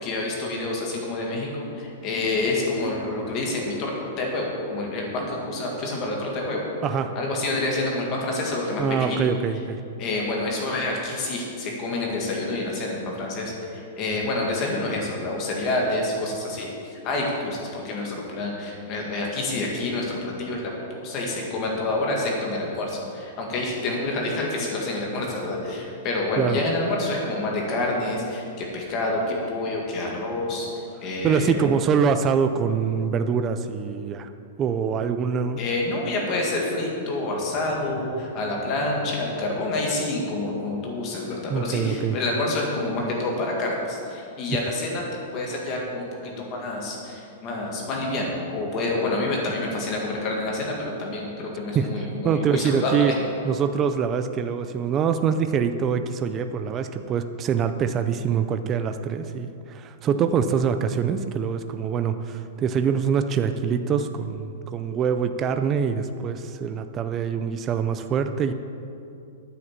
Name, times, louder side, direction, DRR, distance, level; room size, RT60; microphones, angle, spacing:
voice 1, 0.0-3.9 4.2-6.7 7.1-9.3 10.0-30.7 31.0-31.7 35.6-45.0 45.3-53.1, left 2 dB, 25° left, -1 dB, 1.9 m, -28 dB
voice 2, 6.8-7.1 8.8-9.8 26.4-26.6 31.2-34.3 34.6-35.6 41.5-42.2 51.7-51.9 52.2-53.1 53.4-68.5, right 7 dB, 15° right, 9 dB, 0.4 m, -24 dB
9.6 x 7.8 x 7.4 m, 2.6 s
supercardioid pair, 180°, 0 cm